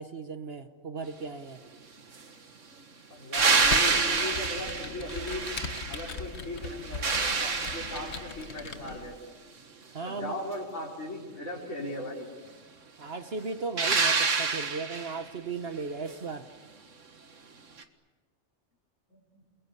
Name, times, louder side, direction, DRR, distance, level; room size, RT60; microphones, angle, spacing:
voice 1, 0.0-1.6 9.9-10.4 13.0-16.5, right 4 dB, 55° right, 8 dB, 1.3 m, -36 dB
voice 2, 3.1-5.4 5.9-9.3 10.0-12.3 19.1-19.4, left 1 dB, 80° left, -1 dB, 5.1 m, -38 dB
sound 1, 3.3-6.2 6.6-8.4 13.8-15.2 17.8-17.9, right 4 dB, 90° right, 2.0 m, -27 dB
Computer keyboard, 3.4-9.2, left 5 dB, 65° left, 1.5 m, -40 dB
29.5 x 21.5 x 8.4 m, 1.3 s
omnidirectional pair, 1.2 m